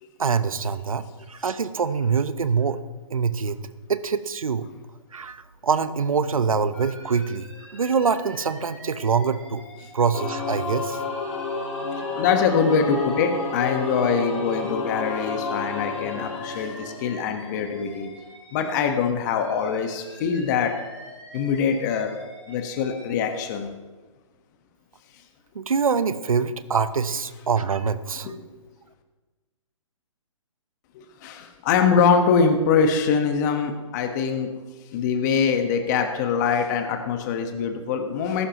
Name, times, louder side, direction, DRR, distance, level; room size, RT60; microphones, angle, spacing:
voice 1, 0.2-2.8 3.1-3.6 3.9-4.7 5.1-7.5 7.7-9.6 9.9-11.0 25.5-28.3, right 5 dB, 85° right, 13 dB, 1.0 m, -24 dB
Alarm, 6.7-10.6 10.9-14.8 15.1-18.9 19.2-23.1, left 1 dB, 5° left, 4.3 m, -46 dB
Singing / Musical instrument, 10.1-17.6, left 4 dB, 75° left, 3.0 m, -30 dB
voice 2, 12.1-18.1 18.5-20.7 21.3-22.1 22.5-23.7 28.2-28.4 30.9-34.5 34.9-38.5, left 6 dB, 35° left, 5 dB, 1.4 m, -23 dB
19.5 x 11.5 x 3.1 m, 1.3 s
hypercardioid pair, 145°, 17 cm